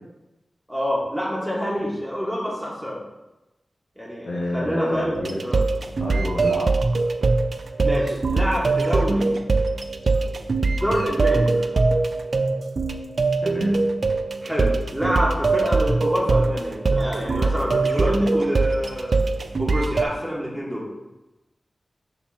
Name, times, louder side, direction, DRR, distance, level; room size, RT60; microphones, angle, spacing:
voice 1, 0.7-3.0 4.0-5.2 5.4-5.6 7.8-9.4 10.6-11.6 14.4-19.2 19.6-20.9, equal, ahead, -4 dB, 2.0 m, -27 dB
voice 2, 4.2-5.4 6.0-6.7 13.4-13.8, left 1 dB, 80° left, -4 dB, 1.6 m, -28 dB
sound 1, 5.2-20.0, right 3 dB, 65° right, 0.5 m, -22 dB
5.8 x 4.2 x 4.4 m, 1.0 s
cardioid pair, 50°, 0 cm